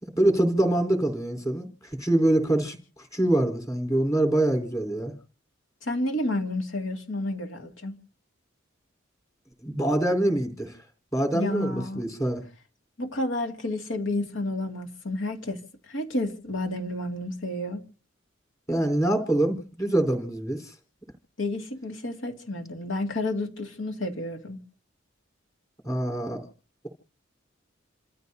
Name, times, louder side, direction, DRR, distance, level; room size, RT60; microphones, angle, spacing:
voice 1, 0.0-1.7 2.0-5.1 9.6-10.8 11.1-12.4 18.7-20.7 25.9-26.5, right 1 dB, 15° left, 4.0 m, -25 dB
voice 2, 5.8-7.9 11.3-12.0 13.0-17.8 21.4-24.6, left 1 dB, 80° left, 2.3 m, -30 dB
29.0 x 14.0 x 2.8 m
head